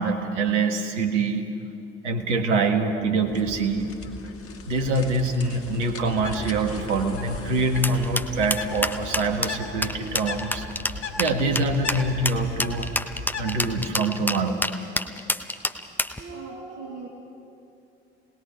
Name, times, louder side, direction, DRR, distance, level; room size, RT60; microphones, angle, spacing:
voice 1, 0.0-1.5 2.0-3.9 4.7-10.6 11.2-12.9 13.4-14.6, right 3 dB, 80° right, 5 dB, 1.6 m, -25 dB
sound 1, 3.3-9.3, left 3 dB, 40° left, 2.2 m, -41 dB
Bird, 6.1-13.9, left 3 dB, 80° left, 1.8 m, -37 dB
sound 2, 7.8-16.2, left 1 dB, 5° left, 1.1 m, -27 dB
voice 2, 16.2-17.1, right 4 dB, 65° right, 1 dB, 1.9 m, -38 dB
28.5 x 20.0 x 5.1 m, 2.6 s
figure-of-eight pair, 50°, 35 cm